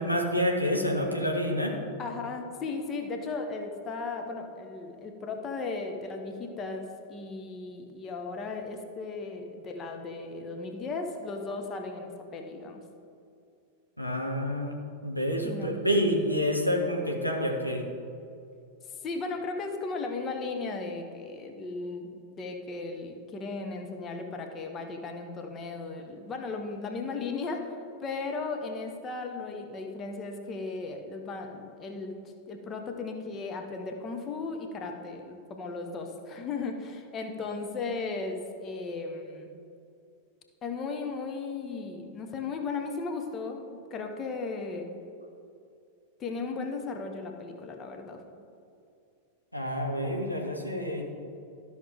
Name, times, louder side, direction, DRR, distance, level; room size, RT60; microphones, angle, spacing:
voice 1, 0.0-1.8 14.0-17.8 49.5-51.0, equal, 90° left, 1 dB, 1.0 m, -28 dB
voice 2, 2.0-12.8 15.4-15.7 18.8-32.2 32.5-39.5 40.6-44.9 46.2-48.2, left 3 dB, 25° left, 4 dB, 1.0 m, -36 dB
12.5 x 6.4 x 3.6 m, 2.5 s
figure-of-eight pair, 90°, 0 cm